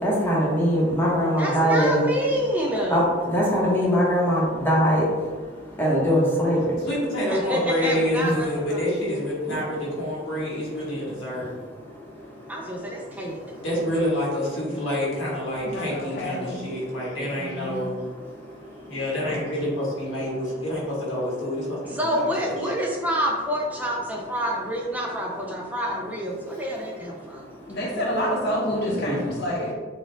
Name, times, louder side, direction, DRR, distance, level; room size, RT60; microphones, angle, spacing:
voice 1, 0.0-2.0 2.9-3.0 3.3-5.0 5.8-6.6 8.2-8.3 29.1-29.2, equal, 10° left, -6 dB, 0.9 m, -21 dB
voice 2, 1.4-3.0 7.3-8.8 12.5-13.4 14.7-14.8 21.9-27.4, equal, 10° right, -2 dB, 0.4 m, -27 dB
voice 3, 6.8-11.5 13.6-18.1 18.9-22.6, left 1 dB, 85° left, -5 dB, 1.5 m, -28 dB
voice 4, 15.6-16.7 17.3-18.0 27.7-29.7, equal, 60° left, -2 dB, 0.9 m, -28 dB
4.1 x 2.3 x 3.8 m, 1.5 s
head